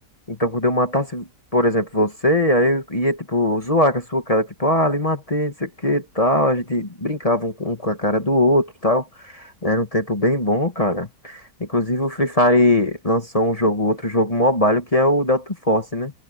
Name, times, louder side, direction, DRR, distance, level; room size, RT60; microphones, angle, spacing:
voice 1, 0.3-1.3 1.5-16.1, left 1 dB, 20° left, 1.7 m, -20 dB
omnidirectional pair, 1.8 m